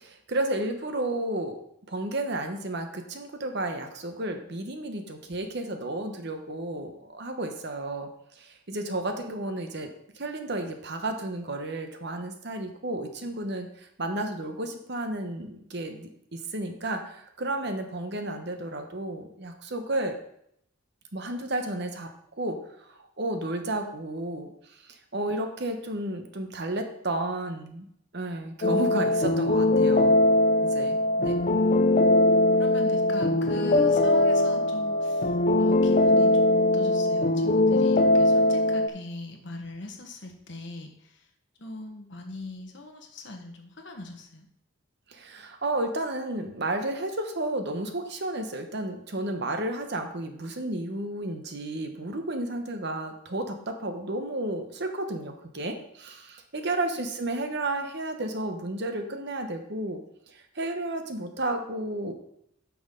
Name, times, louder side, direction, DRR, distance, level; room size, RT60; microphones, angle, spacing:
voice 1, 0.0-1.6 1.9-8.1 8.4-9.9 10.2-20.1 21.1-22.1 22.4-24.5 24.8-27.9 28.1-30.2 30.6-31.0 31.2-31.3 45.1-60.0 60.3-62.1, right 1 dB, 55° right, 6 dB, 1.0 m, -32 dB
sound 1, 28.6-38.9, left 2 dB, 40° left, 0.5 m, -21 dB
voice 2, 31.1-41.3 41.6-44.5, left 2 dB, 55° left, 3 dB, 1.3 m, -41 dB
8.9 x 6.2 x 3.8 m, 0.73 s
head